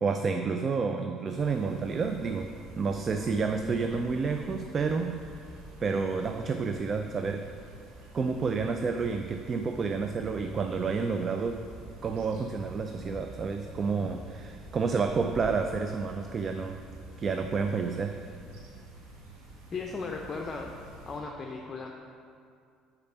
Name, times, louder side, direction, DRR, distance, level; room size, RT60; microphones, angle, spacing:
voice 1, 0.0-5.4 5.8-7.5 8.1-11.6 12.0-16.8 17.2-18.2, right 5 dB, 40° right, 6 dB, 0.4 m, -30 dB
sound 1, 1.3-21.2, right 2 dB, 80° right, 1.3 m, -48 dB
voice 2, 19.7-20.7 21.1-21.9, left 4 dB, 35° left, 1 dB, 0.6 m, -36 dB
5.8 x 5.2 x 5.9 m, 2.3 s
hypercardioid pair, 65°, 0 cm